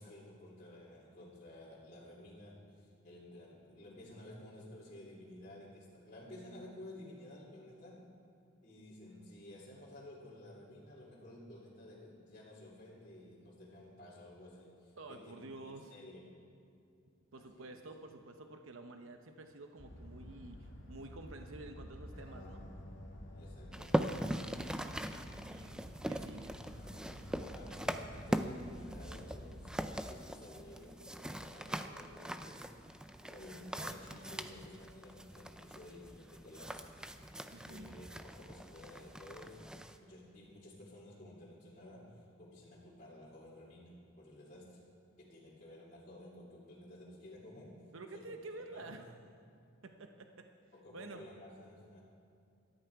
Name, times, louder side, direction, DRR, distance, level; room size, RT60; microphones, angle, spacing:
voice 1, 0.0-8.1 8.6-16.4 17.3-17.7 23.3-24.2 27.4-32.7 33.2-36.9 37.7-39.7 40.0-44.8 45.2-47.8 48.1-48.3 48.7-49.0 50.7-52.0, left 1 dB, 35° left, -9 dB, 2.9 m, -53 dB
voice 2, 15.0-15.9 17.3-22.6 25.1-25.8 26.1-26.6 37.5-38.0 47.9-49.1 49.8-50.5 50.9-51.2, right 2 dB, 75° right, 5 dB, 0.8 m, -50 dB
sound 1, 19.8-29.8, equal, 65° left, 2.1 m, -50 dB
sound 2, 23.7-40.0, equal, 5° right, 0.4 m, -41 dB
18.5 x 13.0 x 4.7 m, 2.5 s
head